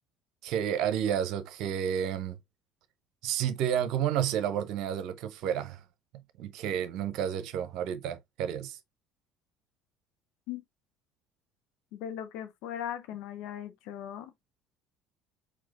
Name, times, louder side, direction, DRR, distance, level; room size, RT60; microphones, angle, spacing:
voice 1, 0.4-2.4 3.2-5.8 6.4-8.8, right 9 dB, 55° right, 0.8 m, -30 dB
voice 2, 11.9-14.3, left 10 dB, 60° left, 0.7 m, -38 dB
4.7 x 4.5 x 2.4 m
figure-of-eight pair, 60°, 0 cm